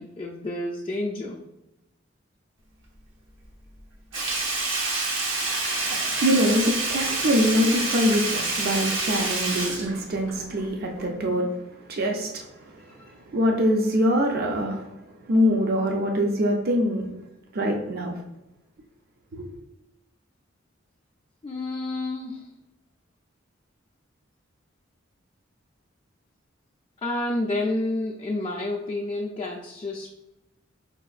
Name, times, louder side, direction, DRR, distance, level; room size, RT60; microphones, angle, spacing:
voice 1, 0.0-1.4 13.0-13.1 21.4-22.5 27.0-30.1, left 2 dB, 25° left, -1 dB, 0.3 m, -29 dB
Sink (filling or washing), 4.1-10.7 11.0-11.1, right 2 dB, 75° right, 0.8 m, -27 dB
voice 2, 5.9-11.5 11.9-12.5 12.7-13.0 13.3-14.9 15.3-17.0 17.5-18.1 19.3-19.5, equal, 50° right, 1 dB, 0.5 m, -24 dB
4.8 x 2.5 x 2.4 m, 0.93 s
head